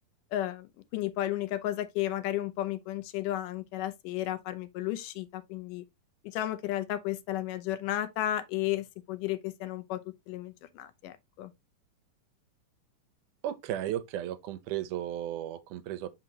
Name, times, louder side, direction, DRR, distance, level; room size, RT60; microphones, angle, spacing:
voice 1, 0.3-5.8 6.2-10.0 10.3-11.5, left 13 dB, 85° left, 2.3 m, -33 dB
voice 2, 13.4-16.1, right 12 dB, 80° right, 2.2 m, -34 dB
6.4 x 5.8 x 2.8 m
omnidirectional pair, 3.7 m